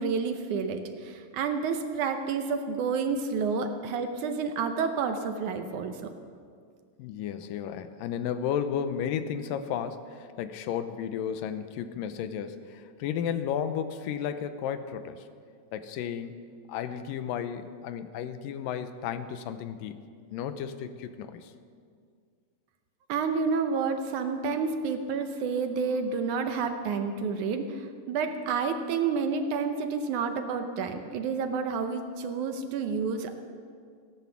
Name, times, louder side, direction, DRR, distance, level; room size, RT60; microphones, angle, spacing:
voice 1, 0.0-6.1 23.1-33.3, right 5 dB, 70° right, 7 dB, 2.0 m, -29 dB
voice 2, 7.0-15.3 15.7-16.4 16.7-20.1 20.3-21.5, left 8 dB, 80° left, 10 dB, 2.3 m, -33 dB
17.0 x 11.5 x 7.0 m, 2.1 s
omnidirectional pair, 4.1 m